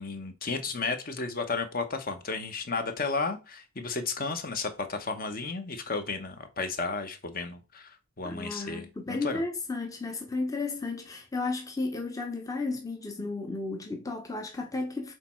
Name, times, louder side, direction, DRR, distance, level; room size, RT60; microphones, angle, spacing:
voice 1, 0.0-9.4, left 4 dB, 45° left, 1.0 m, -33 dB
voice 2, 8.2-15.1, left 3 dB, 15° left, 0.7 m, -33 dB
6.7 x 4.1 x 4.4 m
head